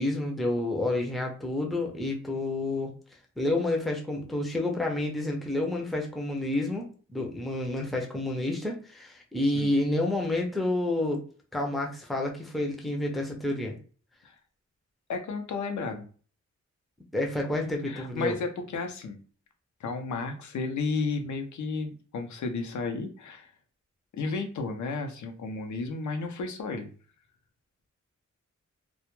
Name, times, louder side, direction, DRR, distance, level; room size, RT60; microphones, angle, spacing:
voice 1, 0.0-2.9 3.4-11.2 11.5-13.8 17.1-18.4, left 2 dB, ahead, 1 dB, 0.4 m, -29 dB
voice 2, 15.1-16.1 17.9-19.2 19.8-23.5 24.1-26.9, left 4 dB, 85° left, 5 dB, 0.5 m, -33 dB
2.1 x 2.1 x 3.0 m, 0.40 s
wide cardioid pair, 165°, 29 cm